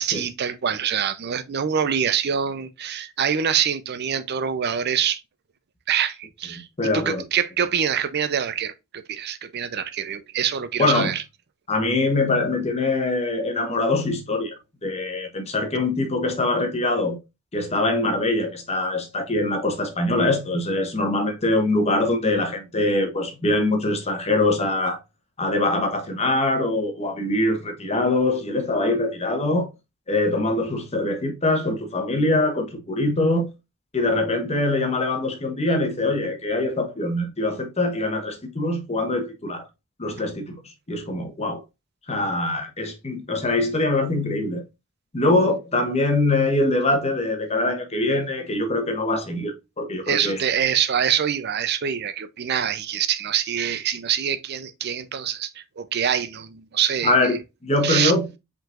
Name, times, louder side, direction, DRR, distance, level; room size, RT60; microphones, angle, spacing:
voice 1, 0.0-5.2 5.9-6.7 6.9-11.2 50.1-57.4 57.8-58.1, right 8 dB, 55° right, 0.5 m, -25 dB
voice 2, 6.8-7.2 10.8-11.1 11.7-14.6 14.8-17.2 17.5-25.0 25.4-29.7 30.1-33.5 33.9-39.7 40.0-40.6 40.9-41.6 42.1-44.6 45.1-50.4 57.0-58.4, left 2 dB, 30° left, 1.0 m, -23 dB
5.4 x 3.8 x 2.4 m
head